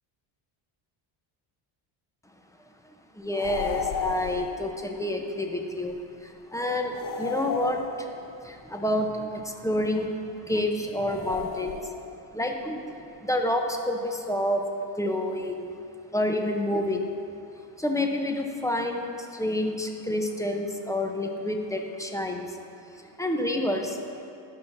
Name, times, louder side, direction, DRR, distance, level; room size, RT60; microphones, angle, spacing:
voice 1, 3.1-8.1 8.4-11.9 12.3-14.6 15.0-15.8 16.1-17.1 17.8-22.6 23.0-24.3, left 1 dB, 5° left, 3 dB, 0.7 m, -29 dB
sound 1, 3.3-4.7 6.9-8.4 11.1-12.2, left 7 dB, 45° left, 0.6 m, -33 dB
15.0 x 5.6 x 2.6 m, 2.7 s
cardioid pair, 95°, 50 cm